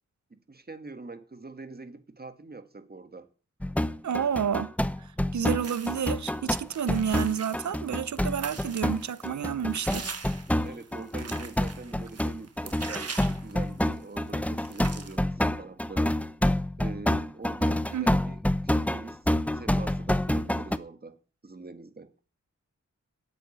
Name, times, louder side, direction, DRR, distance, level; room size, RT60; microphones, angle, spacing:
voice 1, 0.3-3.3 10.6-16.1 16.8-22.1, right 3 dB, 30° right, 1.6 m, -44 dB
sound 1, 3.6-20.8, left 1 dB, 5° left, 0.7 m, -28 dB
voice 2, 4.0-4.7 5.0-10.1 17.9-18.1, right 8 dB, 70° right, 0.8 m, -30 dB
sound 2, 5.6-6.2 6.7-14.0 14.3-14.4 14.6-15.2, right 5 dB, 55° right, 1.6 m, -42 dB
9.4 x 8.2 x 8.4 m
wide cardioid pair, 75°, 30 cm